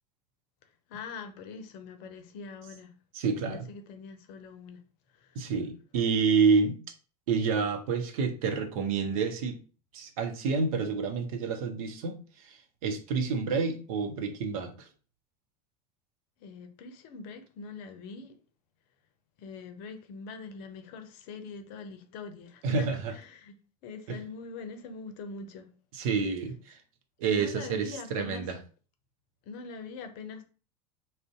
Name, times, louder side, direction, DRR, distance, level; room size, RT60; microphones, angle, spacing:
voice 1, 0.9-2.9 3.5-4.8 5.1-5.4 16.4-18.4 19.4-23.5 23.8-25.7 27.2-28.4 29.4-30.4, left 4 dB, 50° left, 0.6 m, -43 dB
voice 2, 3.1-3.7 5.4-6.8 7.3-9.6 9.9-14.9 22.6-23.1 24.1-24.2 25.9-26.8 27.2-28.5, right 5 dB, 60° right, 0.7 m, -28 dB
2.5 x 2.1 x 3.6 m
figure-of-eight pair, 80°, 21 cm